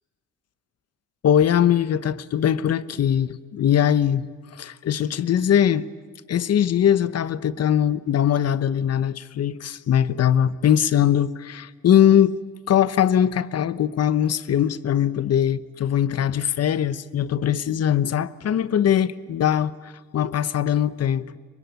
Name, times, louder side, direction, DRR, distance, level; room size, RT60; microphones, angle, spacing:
voice 1, 1.2-5.9 6.3-12.4 12.7-21.4, left 9 dB, 55° left, 1.0 m, -21 dB
24.5 x 23.5 x 9.5 m
cardioid pair, 90°, 30 cm